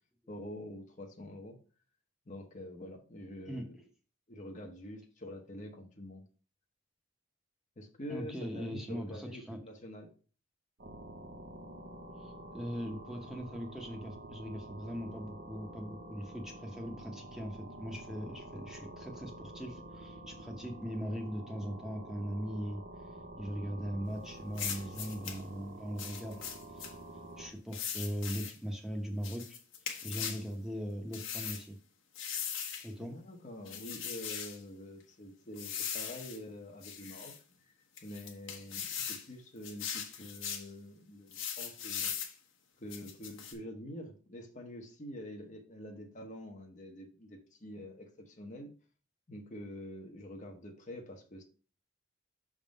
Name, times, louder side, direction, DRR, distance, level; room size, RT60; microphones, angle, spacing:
voice 1, 0.3-1.6 2.3-3.8 4.3-6.3 7.8-10.1 33.0-42.1 42.8-48.7 49.3-51.4, left 1 dB, 35° left, 3 dB, 0.9 m, -46 dB
voice 2, 8.1-9.6 12.2-22.8 23.4-26.4 26.7-26.9 27.4-29.6 30.0-31.8 32.8-33.1, equal, ahead, 1 dB, 0.9 m, -40 dB
sound 1, 10.8-27.5, right 1 dB, 50° right, 0.8 m, -48 dB
sound 2, 24.5-25.4 26.0-26.9 27.7-28.6 29.2-30.4 31.1-31.6 32.1-32.9 33.6-34.6 35.6-36.4 36.8-37.4 38.0-39.2 39.6-40.7 41.3-42.3 42.9-43.5, left 8 dB, 70° left, 1.2 m, -39 dB
6.4 x 3.7 x 5.2 m, 0.38 s
head